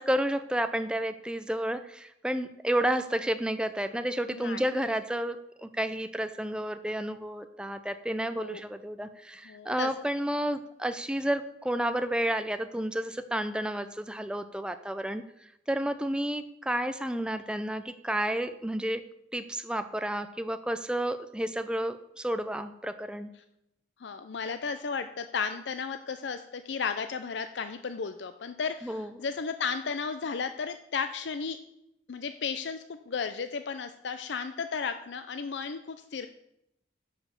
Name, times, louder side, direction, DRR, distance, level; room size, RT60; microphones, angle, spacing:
voice 1, 0.0-15.2 15.7-19.0 19.3-23.3 28.8-29.1, right 1 dB, 5° right, 9 dB, 0.5 m, -31 dB
voice 2, 4.3-4.7 8.4-8.6 9.4-9.9 24.0-31.6 32.1-36.3, left 5 dB, 80° left, 9 dB, 0.5 m, -34 dB
10.5 x 5.1 x 7.0 m, 0.82 s
head